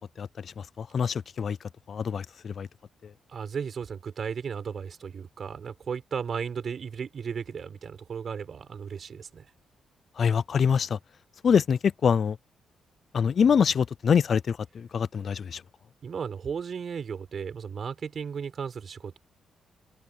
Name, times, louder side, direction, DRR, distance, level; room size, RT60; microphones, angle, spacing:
voice 1, 0.2-1.6 1.9-2.7 10.2-11.0 11.4-12.4 13.1-15.6, left 7 dB, 55° left, 0.5 m, -25 dB
voice 2, 3.3-9.5 16.0-19.2, right 6 dB, 55° right, 6.2 m, -35 dB
open air
cardioid pair, 75°, 0 cm